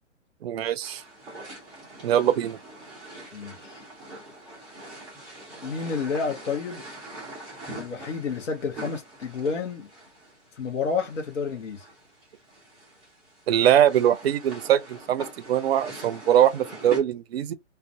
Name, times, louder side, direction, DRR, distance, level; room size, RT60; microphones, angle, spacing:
voice 1, 0.4-1.0 2.0-2.6 13.5-17.5, right 10 dB, 55° right, 0.5 m, -22 dB
sound 1, 0.8-17.0, right 1 dB, ahead, 0.4 m, -44 dB
voice 2, 3.3-3.8 5.6-6.8 7.7-9.9 10.6-11.8, left 5 dB, 75° left, 0.9 m, -30 dB
2.5 x 2.3 x 2.5 m
hypercardioid pair, 140°, 37 cm